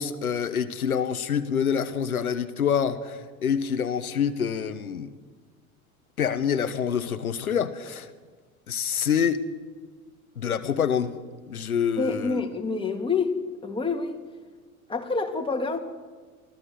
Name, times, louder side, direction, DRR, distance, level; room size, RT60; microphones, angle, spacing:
voice 1, 0.0-5.1 6.2-8.1 8.7-9.4 10.4-11.2 11.5-12.4, left 7 dB, 85° left, 1.2 m, -26 dB
voice 2, 12.0-13.3 13.6-14.2 14.9-15.8, left 4 dB, 10° left, 3.1 m, -27 dB
24.0 x 15.0 x 8.1 m
figure-of-eight pair, 70°, 42 cm